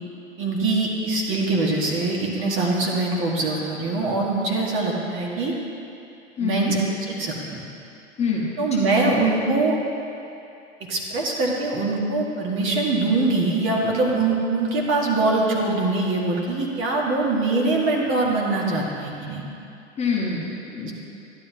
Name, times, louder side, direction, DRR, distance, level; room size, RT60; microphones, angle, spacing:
voice 1, 0.4-5.5 6.4-7.6 8.6-9.8 10.8-19.4 20.8-20.9, right 2 dB, 35° right, -2 dB, 1.6 m, -23 dB
voice 2, 6.4-6.7 8.2-8.8 20.0-20.9, left 4 dB, 20° left, -4 dB, 1.3 m, -26 dB
12.0 x 9.8 x 2.8 m, 2.7 s
figure-of-eight pair, 100°, 36 cm